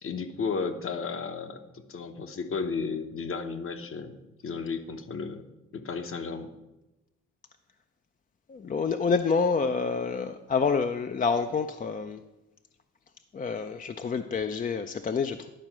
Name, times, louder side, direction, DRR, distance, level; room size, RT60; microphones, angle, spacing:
voice 1, 0.0-5.4 5.7-6.5, left 5 dB, 45° left, 8 dB, 0.9 m, -34 dB
voice 2, 8.5-12.2 13.3-15.5, left 5 dB, 30° left, 7 dB, 0.4 m, -28 dB
11.0 x 4.4 x 6.1 m, 1.0 s
cardioid pair, 90°, 30 cm